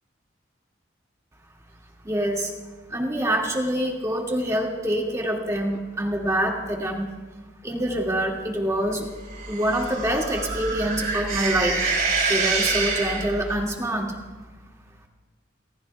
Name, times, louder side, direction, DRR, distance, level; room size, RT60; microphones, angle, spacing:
voice 1, 2.0-2.5 2.9-7.1 7.6-9.1 9.5-11.8 12.3-14.1, right 1 dB, 15° right, -1 dB, 2.2 m, -25 dB
sound 1, 9.3-13.6, right 4 dB, 50° right, 4.4 m, -26 dB
29.0 x 19.0 x 2.4 m, 1.3 s
head